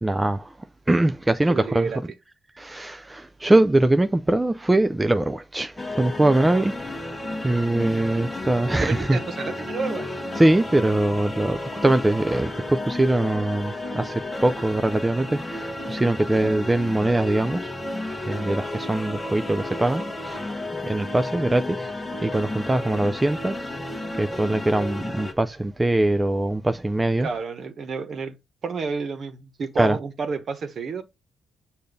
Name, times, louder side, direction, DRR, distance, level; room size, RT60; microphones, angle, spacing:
voice 1, 0.0-1.9 2.6-7.1 7.4-9.2 10.4-17.7 18.3-20.4 20.8-21.9 22.2-23.7 24.2-27.3 29.8-30.0, right 1 dB, 15° right, 0.4 m, -22 dB
voice 2, 1.5-2.0 7.8-8.3 8.8-10.1 27.2-28.4 28.6-31.0, right 5 dB, 50° right, 1.1 m, -30 dB
sound 1, 5.8-25.3, left 1 dB, 15° left, 1.2 m, -32 dB
6.7 x 2.7 x 5.2 m
cardioid pair, 90°, 0 cm